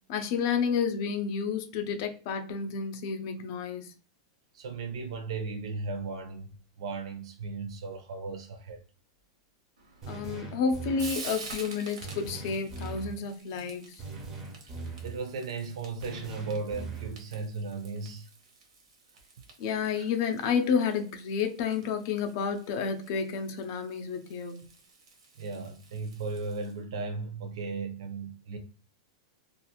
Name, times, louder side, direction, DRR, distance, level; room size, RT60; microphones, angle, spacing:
voice 1, 0.1-3.9 10.1-14.0 19.6-24.6, left 6 dB, 40° left, 0.4 m, -30 dB
voice 2, 4.5-8.8 14.6-14.8 15.0-18.3 19.9-20.1 25.4-28.6, right 4 dB, 65° right, 0.6 m, -36 dB
Frying (food), 9.8-26.7, right 4 dB, 85° right, 0.9 m, -49 dB
sound 1, 10.0-11.2 12.0-13.2 14.0-15.2 16.0-17.2, right 3 dB, 15° right, 0.5 m, -40 dB
2.4 x 2.4 x 2.8 m
supercardioid pair, 180°, 3 cm